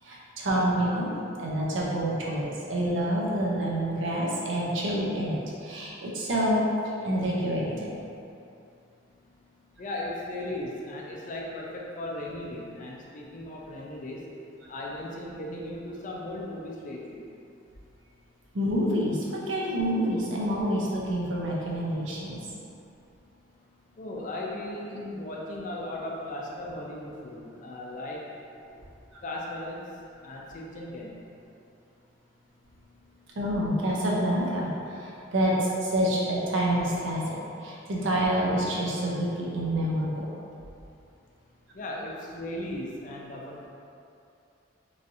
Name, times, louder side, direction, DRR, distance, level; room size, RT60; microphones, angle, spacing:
voice 1, 0.0-7.9 18.5-22.4 33.3-40.3, equal, 85° right, -4 dB, 0.6 m, -27 dB
voice 2, 9.8-14.3 14.7-17.3 24.0-28.3 28.7-28.8 29.2-29.9 30.2-31.2 41.7-43.7, left 1 dB, 40° left, -2 dB, 0.4 m, -37 dB
3.1 x 2.6 x 2.6 m, 2.6 s
head